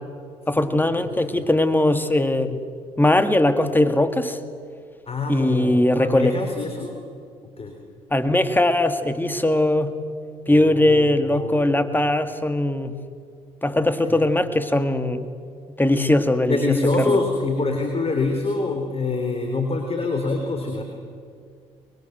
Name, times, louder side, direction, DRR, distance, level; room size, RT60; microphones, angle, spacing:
voice 1, 0.5-2.6 3.0-4.4 5.3-6.4 8.1-9.9 10.5-12.9 13.6-15.3 15.8-16.6 17.0-17.2, left 1 dB, 10° left, 9 dB, 2.0 m, -20 dB
voice 2, 5.1-6.9 7.6-7.7 10.5-11.8 13.7-14.3 16.5-20.8, left 3 dB, 35° left, 4 dB, 3.7 m, -26 dB
24.0 x 21.5 x 8.0 m, 2.2 s
hypercardioid pair, 50°, 16 cm